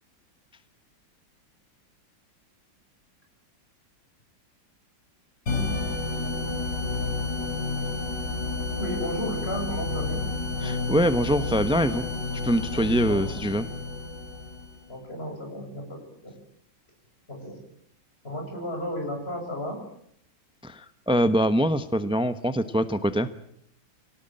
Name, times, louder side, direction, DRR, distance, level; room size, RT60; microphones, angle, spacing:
sound 1, 5.5-14.8, left 3 dB, 70° left, 4.8 m, -30 dB
voice 1, 8.8-10.3 13.0-13.2 14.9-16.4 17.3-17.6 18.2-19.8, equal, 30° left, 2 dB, 7.5 m, -33 dB
voice 2, 10.6-12.0 12.4-13.7 20.6-23.3, equal, 5° right, 12 dB, 0.4 m, -24 dB
25.5 x 18.5 x 9.0 m, 0.68 s
omnidirectional pair, 2.0 m